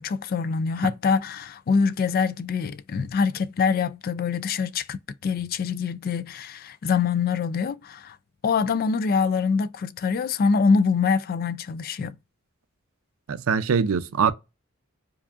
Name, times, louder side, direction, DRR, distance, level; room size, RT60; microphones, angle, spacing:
voice 1, 0.0-5.0 5.2-8.2 8.4-12.2, left 5 dB, 45° left, 0.3 m, -24 dB
voice 2, 13.3-14.3, right 6 dB, 85° right, 0.5 m, -22 dB
4.8 x 2.6 x 2.4 m
head